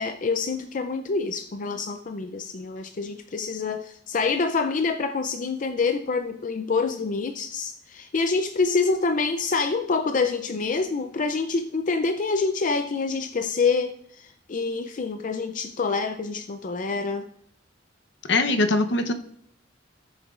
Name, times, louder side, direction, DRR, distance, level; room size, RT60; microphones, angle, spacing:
voice 1, 0.0-17.3, left 4 dB, 45° left, 7 dB, 0.4 m, -26 dB
voice 2, 18.3-19.1, left 2 dB, 65° left, 7 dB, 0.8 m, -21 dB
17.0 x 7.0 x 2.4 m, 0.67 s
head